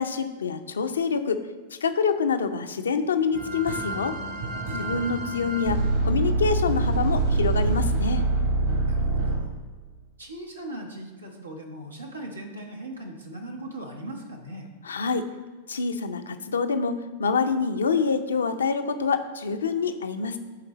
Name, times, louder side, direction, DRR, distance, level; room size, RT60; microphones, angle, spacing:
voice 1, 0.0-1.4 1.8-4.2 4.8-8.2 14.8-15.3 15.7-20.4, left 5 dB, 75° left, 8 dB, 0.6 m, -26 dB
sound 1, 3.3-9.4, right 3 dB, 65° right, 2.4 m, -25 dB
voice 2, 4.7-5.0 8.8-9.5 10.2-14.7, right 1 dB, 90° right, 1 dB, 1.0 m, -39 dB
10.5 x 3.9 x 4.1 m, 1.4 s
figure-of-eight pair, 95°, 0 cm